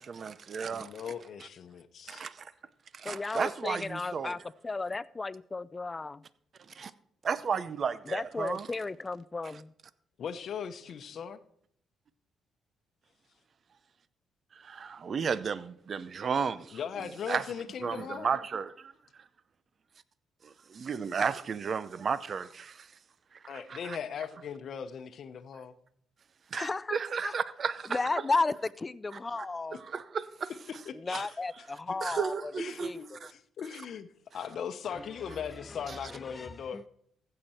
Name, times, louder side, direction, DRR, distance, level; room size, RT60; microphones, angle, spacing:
voice 1, 0.0-0.9 2.1-2.5 2.9-4.3 6.8-6.9 7.2-8.7 14.6-16.8 17.3-17.4 17.8-18.9 20.7-22.9 23.5-24.0 26.5-28.0 29.7-30.5 31.1-31.2 32.0-32.9 33.2-33.3, right 6 dB, 45° right, 0.6 m, -33 dB
voice 2, 0.7-2.3 10.2-11.4 16.7-18.4 23.5-25.7 30.7-31.3 32.6-36.9, left 7 dB, 60° left, 0.8 m, -39 dB
voice 3, 3.0-4.4 4.6-6.2 8.1-9.7 26.5-27.0 27.2-27.3 27.9-29.8 31.0-32.5 32.8-33.2 34.9-35.1 35.3-35.8 36.1-36.8, left 3 dB, 25° left, 0.4 m, -34 dB
15.0 x 6.8 x 4.3 m
cardioid pair, 90°, 0 cm